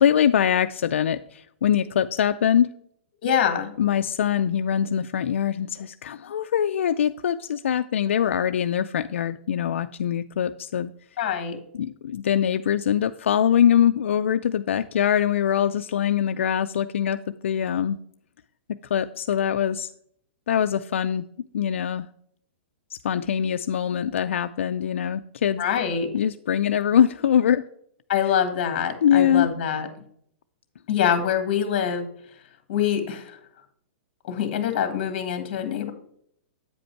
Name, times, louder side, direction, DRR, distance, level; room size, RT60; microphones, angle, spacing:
voice 1, 0.0-2.7 3.8-10.9 11.7-17.2 17.4-18.0 18.9-19.9 20.5-21.2 21.5-22.1 23.0-25.6 26.1-27.6 29.0-29.5, left 9 dB, 85° left, 9 dB, 0.4 m, -23 dB
voice 2, 3.2-3.7 11.2-11.6 25.6-26.1 28.1-29.9 30.9-32.1 32.7-33.4 34.2-35.9, left 8 dB, 45° left, 8 dB, 1.5 m, -24 dB
8.7 x 5.2 x 4.5 m, 0.68 s
hypercardioid pair, 170°, 7 cm